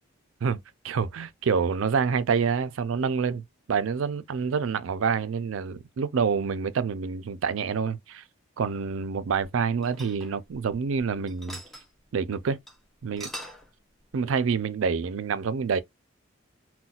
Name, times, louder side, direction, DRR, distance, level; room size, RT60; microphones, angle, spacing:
voice 1, 0.4-8.2 8.6-11.6 12.1-12.6 13.0-13.3 14.1-15.8, right 6 dB, 75° right, 0.4 m, -27 dB
sound 1, 9.8-11.0 11.3-11.9 12.2-12.3 12.7-12.8 13.0-13.7, equal, ahead, 0.5 m, -42 dB
4.0 x 2.2 x 2.3 m
head